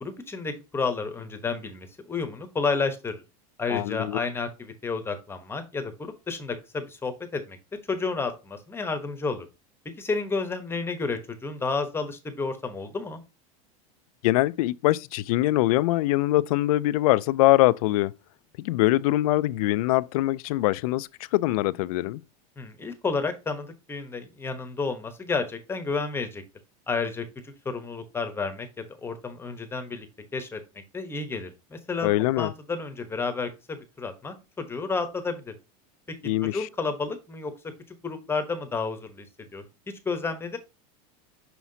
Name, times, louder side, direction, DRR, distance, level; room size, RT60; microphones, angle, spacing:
voice 1, 0.0-3.2 3.6-5.9 6.3-7.6 7.9-9.5 10.0-13.2 22.6-26.4 26.9-27.2 27.6-30.1 30.3-30.6 30.9-32.1 32.4-35.6 36.4-37.5 38.0-39.3 39.5-39.6 40.0-40.6, left 4 dB, 10° left, 1.0 m, -31 dB
voice 2, 3.7-4.2 14.2-18.1 18.6-22.2 32.0-32.5 36.2-36.7, left 17 dB, 70° left, 0.4 m, -23 dB
6.0 x 5.7 x 2.7 m
supercardioid pair, 140°, 19 cm